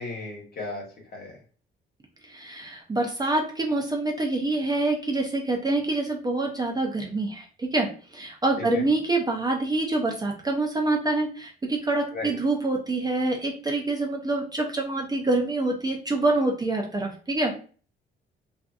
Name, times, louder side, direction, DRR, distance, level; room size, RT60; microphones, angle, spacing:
voice 1, 0.0-1.4 8.7-8.8 12.1-12.3, left 2 dB, 50° left, 0 dB, 1.1 m, -36 dB
voice 2, 2.2-17.6, right 2 dB, 20° right, 1 dB, 0.4 m, -26 dB
2.5 x 2.5 x 2.3 m, 0.40 s
cardioid pair, 90°, 20 cm